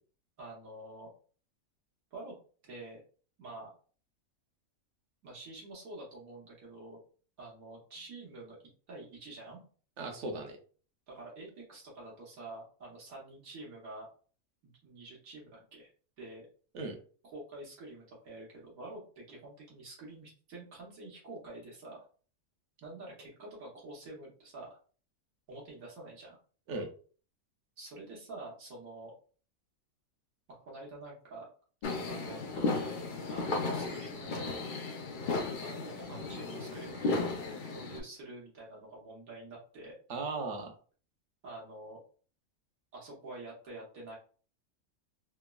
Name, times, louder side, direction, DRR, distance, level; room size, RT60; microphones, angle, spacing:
voice 1, 0.4-1.1 2.1-2.3 2.6-3.0 3.4-3.7 5.2-7.0 7.4-8.6 8.9-9.6 11.1-14.1 14.6-15.9 16.2-16.5 17.2-22.0 22.8-24.7 25.5-26.4 27.8-29.1 30.5-31.5 32.0-34.6 35.6-40.0 41.4-42.0 42.9-44.1, right 2 dB, 90° right, -4 dB, 1.4 m, -47 dB
voice 2, 10.0-10.6 16.7-17.0 26.7-26.9 40.1-40.7, right 3 dB, 65° right, 4 dB, 0.9 m, -37 dB
sound 1, 31.8-38.0, left 3 dB, 80° left, 0.4 m, -35 dB
3.4 x 2.0 x 2.2 m, 0.41 s
omnidirectional pair, 1.4 m